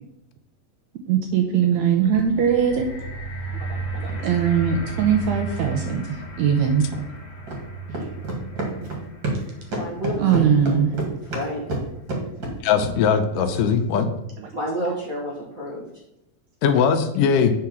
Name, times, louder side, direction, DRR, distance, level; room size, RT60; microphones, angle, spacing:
voice 1, 1.1-2.9 3.7-6.1 6.4-6.9 10.2-10.9, right 7 dB, 85° right, 3 dB, 1.6 m, -21 dB
sound 1, 2.0-12.2 13.0-13.1, right 2 dB, 55° left, 1.6 m, -35 dB
sound 2, 4.0-4.2 5.6-5.7 6.9-7.0 7.5-7.6 7.9-9.5 9.7-13.0, right 2 dB, 40° right, 2.1 m, -28 dB
voice 2, 9.7-10.4 11.1-11.8 14.5-15.9, equal, 65° right, -4 dB, 0.8 m, -30 dB
voice 3, 12.6-14.1 16.6-17.5, left 6 dB, 80° left, 7 dB, 2.1 m, -20 dB
8.5 x 4.7 x 5.8 m, 0.86 s
omnidirectional pair, 4.1 m